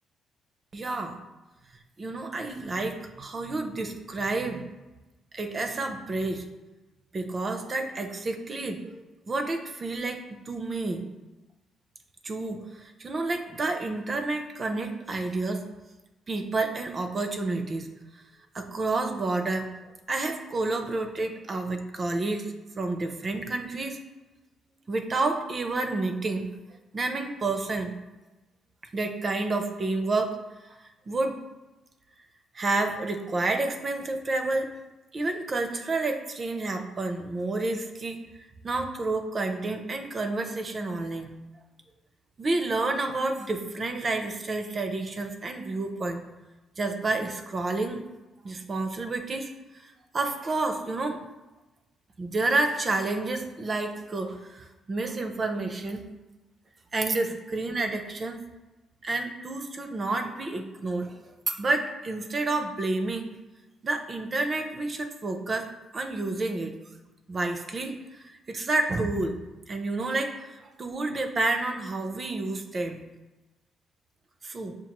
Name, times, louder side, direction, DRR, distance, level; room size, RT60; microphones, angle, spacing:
voice 1, 0.7-1.1 2.0-4.7 5.3-6.5 7.1-11.0 12.2-15.7 16.3-17.9 18.5-19.7 20.1-22.5 22.7-24.0 24.9-26.5 26.9-27.9 28.9-30.4 30.7-30.8 31.1-31.4 32.5-34.7 35.1-38.3 38.6-41.3 42.4-46.2 46.8-48.0 48.4-51.2 52.2-56.0 56.9-58.4 59.0-63.3 63.8-66.7 67.3-69.4 69.7-73.0 74.4-74.8, right 2 dB, 40° right, 5 dB, 0.5 m, -30 dB
5.7 x 2.4 x 2.9 m, 1.1 s
cardioid pair, 90°, 0 cm